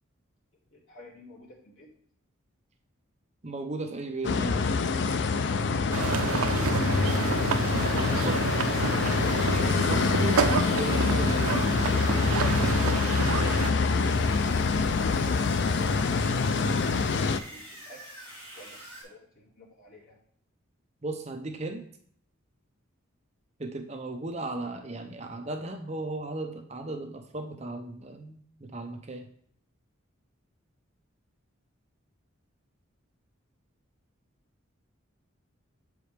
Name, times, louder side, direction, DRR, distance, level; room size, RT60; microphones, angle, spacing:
voice 1, 0.7-1.9 15.8-18.2 18.5-20.2, left 1 dB, 70° left, -4 dB, 2.3 m, -51 dB
voice 2, 3.4-4.6 8.1-8.4 9.4-11.7 21.0-21.8 23.6-29.3, right 2 dB, 30° right, 4 dB, 0.6 m, -36 dB
sound 1, 4.2-17.4, left 4 dB, 55° left, 0.4 m, -25 dB
sound 2, 5.9-13.7, right 5 dB, 80° right, 0.5 m, -29 dB
sound 3, 7.2-19.0, equal, 10° left, 3.0 m, -45 dB
7.5 x 4.9 x 3.3 m, 0.62 s
head